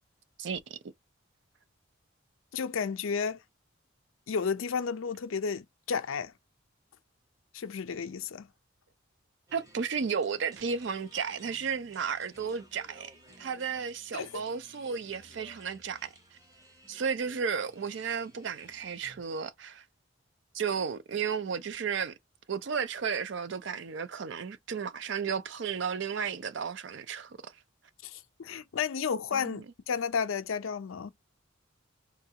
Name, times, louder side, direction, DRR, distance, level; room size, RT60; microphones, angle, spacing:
voice 1, 0.4-0.8 9.5-16.1 16.9-19.8 20.5-22.1 22.5-27.6 29.3-29.6, right 6 dB, 60° right, 0.4 m, -33 dB
voice 2, 2.5-3.4 4.3-6.3 7.5-8.5 14.1-14.4 28.0-31.1, left 6 dB, 80° left, 0.5 m, -32 dB
sound 1, 9.5-19.2, right 1 dB, 15° right, 0.7 m, -57 dB
3.8 x 2.3 x 2.8 m
head